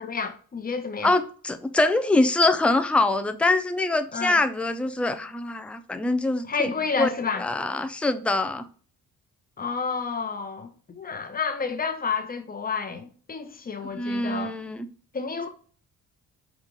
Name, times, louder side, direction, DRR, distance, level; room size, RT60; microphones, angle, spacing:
voice 1, 0.0-1.1 4.1-4.4 6.5-7.5 9.6-14.5 15.1-15.5, left 5 dB, 30° left, 0.8 m, -30 dB
voice 2, 1.0-6.7 7.0-7.1 7.4-8.6 13.9-14.9, left 2 dB, 5° left, 0.4 m, -24 dB
5.1 x 2.4 x 3.0 m
cardioid pair, 90°, 30 cm